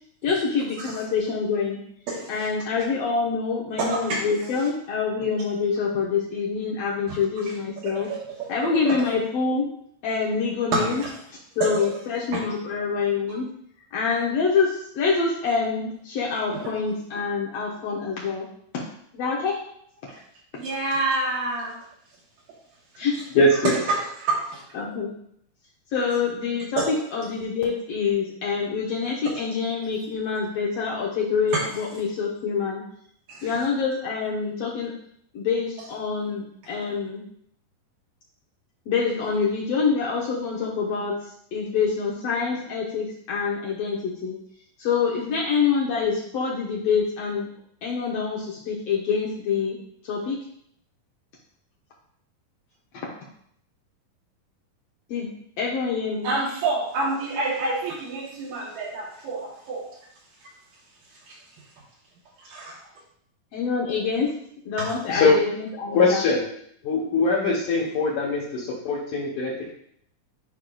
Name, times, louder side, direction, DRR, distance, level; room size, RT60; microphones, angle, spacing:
voice 1, 0.2-1.8 2.3-8.1 8.5-9.6 10.0-11.0 11.6-13.4 13.9-18.5 18.7-18.8 19.1-19.6 23.0-23.1 24.7-25.1 25.9-32.8 33.4-34.9 35.3-37.2 38.9-41.1 41.5-44.4 44.8-47.5 47.8-49.8 50.0-50.4 55.1-55.3 55.6-56.3 63.5-64.3 64.6-66.2, left 5 dB, 85° left, -3 dB, 1.4 m, -26 dB
voice 2, 3.8-4.3 7.1-7.2 7.9-8.5 8.8-9.0 10.7-11.1 11.6-11.9 12.3-12.5 16.5-16.6 20.1-20.2 20.6-21.8 23.6-24.6 26.0-26.1 26.8-26.9 33.3-33.5 56.2-59.8 61.3-61.4 62.4-62.8 64.8-64.9 67.4-67.5, right 3 dB, 75° right, -5 dB, 2.6 m, -28 dB
voice 3, 23.4-23.8 65.1-65.4 65.9-66.5 66.8-69.7, left 3 dB, 70° left, -6 dB, 2.2 m, -21 dB
10.5 x 4.6 x 2.3 m, 0.69 s
omnidirectional pair, 4.0 m